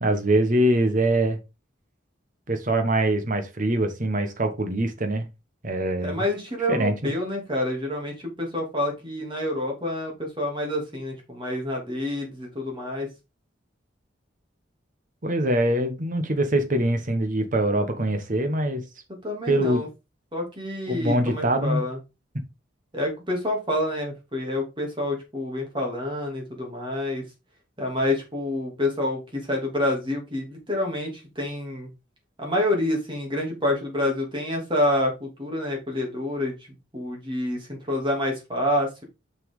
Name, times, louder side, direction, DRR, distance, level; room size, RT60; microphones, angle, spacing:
voice 1, 0.0-1.4 2.5-5.3 5.6-6.2 6.7-7.1 15.2-18.8 19.5-19.8 20.9-21.8, right 1 dB, 45° right, 1.2 m, -23 dB
voice 2, 6.0-13.1 19.1-19.9 20.3-22.0 22.9-27.2 27.8-31.9 32.4-36.5 36.9-39.0, left 1 dB, 25° right, 2.6 m, -28 dB
6.1 x 5.9 x 3.7 m
head